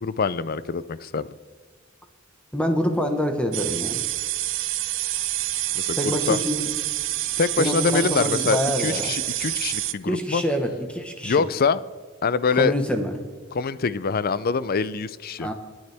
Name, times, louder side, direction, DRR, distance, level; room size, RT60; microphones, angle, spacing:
voice 1, 0.0-1.3 5.7-6.4 7.4-10.4 11.2-11.8 12.2-12.7 13.5-15.5, left 5 dB, 45° left, 17 dB, 0.5 m, -24 dB
voice 2, 2.5-4.0 6.0-6.7 7.6-9.1 10.1-11.5 12.6-13.1 15.4-15.5, equal, 5° left, 4 dB, 1.2 m, -26 dB
sound 1, 3.5-9.9, right 15 dB, 60° right, 0.5 m, -27 dB
27.5 x 9.5 x 3.5 m, 1.4 s
head